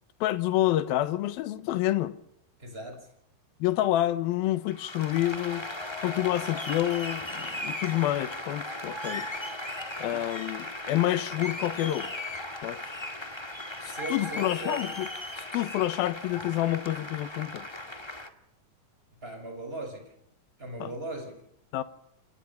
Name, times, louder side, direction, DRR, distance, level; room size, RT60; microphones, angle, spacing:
voice 1, 0.2-2.2 3.6-5.7 6.0-9.3 10.0-12.1 12.6-13.0 13.8-15.1 15.4-17.7 20.8-20.9 21.7-21.8, left 14 dB, 80° left, 2.9 m, -28 dB
voice 2, 2.6-3.1 13.8-14.9 19.2-20.1 20.6-21.4, right 2 dB, 15° right, 6.4 m, -38 dB
Applause, 4.7-18.3, left 1 dB, 20° left, 0.8 m, -37 dB
27.5 x 21.5 x 5.8 m
omnidirectional pair, 4.3 m